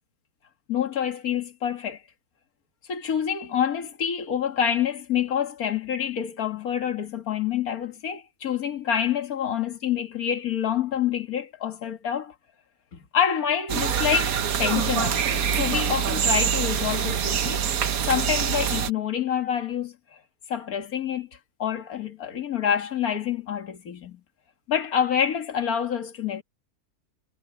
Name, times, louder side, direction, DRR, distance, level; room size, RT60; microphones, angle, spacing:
voice 1, 0.7-2.0 2.9-12.3 13.1-17.6 18.1-20.2 20.5-21.3 21.6-24.2 24.7-26.4, left 8 dB, 75° left, 2.2 m, -27 dB
sound 1, 13.7-18.9, right 8 dB, 70° right, 1.4 m, -25 dB
omnidirectional pair, 1.6 m